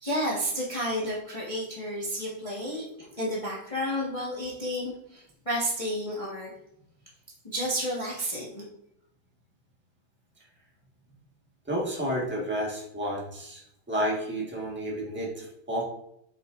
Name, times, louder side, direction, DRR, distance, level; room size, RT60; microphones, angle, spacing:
voice 1, 0.0-6.5 7.4-8.6, equal, 20° left, -5 dB, 1.1 m, -31 dB
voice 2, 11.7-13.6 13.9-15.8, equal, 5° right, -2 dB, 1.1 m, -31 dB
7.8 x 5.6 x 2.5 m, 0.75 s
omnidirectional pair, 2.2 m